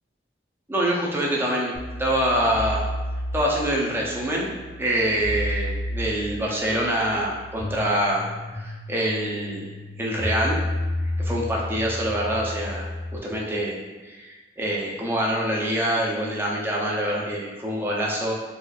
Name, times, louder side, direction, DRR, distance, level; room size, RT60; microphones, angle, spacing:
voice 1, 0.7-2.9 3.3-4.5 4.8-9.7 10.0-10.6 11.2-12.9 13.2-13.8 14.0-18.3, right 1 dB, 15° right, -3 dB, 0.5 m, -25 dB
sound 1, 1.7-13.2, left 1 dB, 45° left, 0.6 m, -32 dB
4.1 x 2.4 x 2.4 m, 1.3 s
head